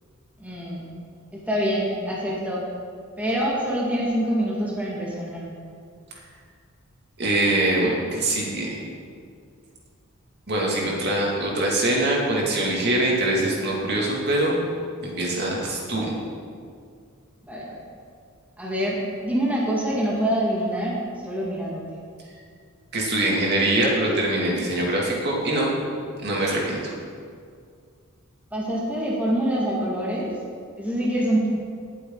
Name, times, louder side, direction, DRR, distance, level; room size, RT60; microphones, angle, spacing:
voice 1, 0.4-0.9 1.3-2.6 3.2-5.6 10.8-10.9 17.4-17.8 18.6-21.0 21.2-21.8 28.5-30.3 30.8-31.5, equal, 5° right, -5 dB, 2.0 m, -25 dB
voice 2, 7.2-8.7 10.5-14.6 15.0-16.1 22.9-25.7 26.2-26.9, right 1 dB, 50° right, -3 dB, 2.5 m, -23 dB
18.5 x 8.3 x 3.9 m, 2.2 s
head